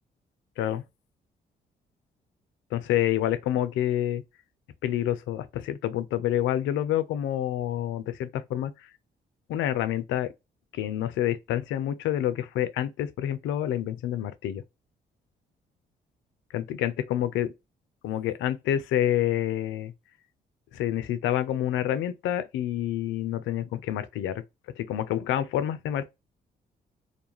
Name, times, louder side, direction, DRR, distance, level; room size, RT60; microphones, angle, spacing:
voice 1, 2.7-4.2 4.8-8.7 9.5-10.3 10.7-14.6 16.5-17.5 18.0-19.9 20.7-24.4 24.8-26.1, left 11 dB, 75° left, 0.4 m, -28 dB
2.3 x 2.1 x 2.9 m
supercardioid pair, 55°, 20 cm